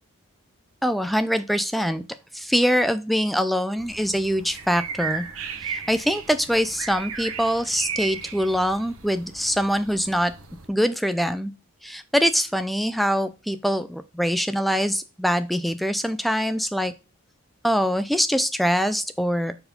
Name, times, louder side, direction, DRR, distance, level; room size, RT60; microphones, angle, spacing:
voice 1, 0.8-2.0 2.3-5.3 5.6-10.3 10.7-11.5 11.8-16.9 17.6-19.5, equal, ahead, 11 dB, 0.4 m, -23 dB
sound 1, 3.8-10.7, right 6 dB, 70° right, 1.0 m, -36 dB
4.6 x 4.3 x 5.1 m, 0.30 s
head